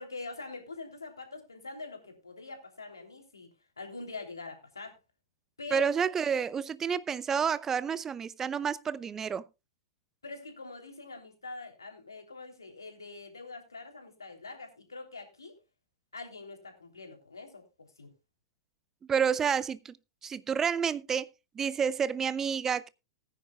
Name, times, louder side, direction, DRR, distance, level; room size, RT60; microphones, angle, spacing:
voice 1, 0.0-5.0 5.6-5.9 10.2-15.6 16.1-18.1, left 3 dB, 85° left, 3.3 m, -44 dB
voice 2, 5.7-9.4 19.1-20.0 20.2-21.3 21.5-22.9, right 7 dB, 20° right, 0.6 m, -29 dB
19.0 x 10.0 x 2.4 m
figure-of-eight pair, 100°, 2 cm